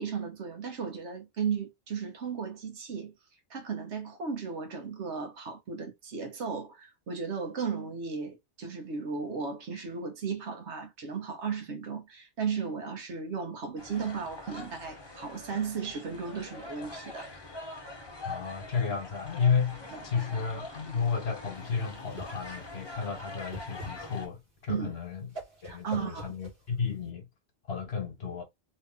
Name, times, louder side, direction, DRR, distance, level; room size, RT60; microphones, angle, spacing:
voice 1, 0.0-3.1 3.5-17.3 19.9-20.0 24.7-24.9 25.6-26.3, right 6 dB, 75° right, 1.2 m, -35 dB
sound 1, 13.8-24.3, left 2 dB, 25° left, 0.8 m, -44 dB
voice 2, 18.2-25.3 25.6-27.3 27.7-28.4, left 6 dB, 60° left, 1.2 m, -32 dB
Whoosh swoosh swish, 21.6-27.1, equal, 60° right, 1.5 m, -46 dB
3.0 x 2.7 x 3.6 m
omnidirectional pair, 1.2 m